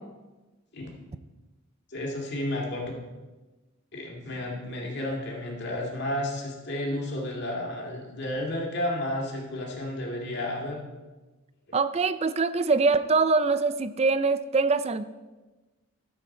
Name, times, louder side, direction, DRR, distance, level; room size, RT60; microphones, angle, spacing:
voice 1, 1.9-2.9 3.9-10.8, left 1 dB, 50° left, -1 dB, 2.3 m, -32 dB
voice 2, 11.7-15.0, right 4 dB, 30° right, 13 dB, 0.4 m, -23 dB
13.0 x 7.6 x 4.4 m, 1.2 s
head